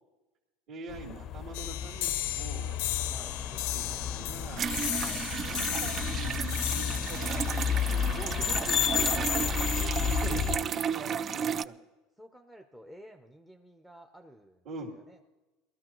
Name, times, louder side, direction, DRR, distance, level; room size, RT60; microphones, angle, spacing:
voice 1, 0.7-2.8 3.5-4.7 5.4-9.4 9.7-11.7 14.7-14.9, right 3 dB, 55° right, -4 dB, 2.1 m, -44 dB
sound 1, 0.9-10.6, left 8 dB, 40° left, 0.6 m, -32 dB
sound 2, 1.5-8.6, left 14 dB, 75° left, 0.6 m, -36 dB
sound 3, 4.6-11.6, right 7 dB, 30° right, 0.3 m, -33 dB
voice 2, 8.2-8.9 11.3-11.6 12.2-14.7 14.9-15.2, right 1 dB, 5° right, 6 dB, 0.6 m, -51 dB
19.5 x 13.0 x 3.0 m, 1.1 s
supercardioid pair, 140°, 0 cm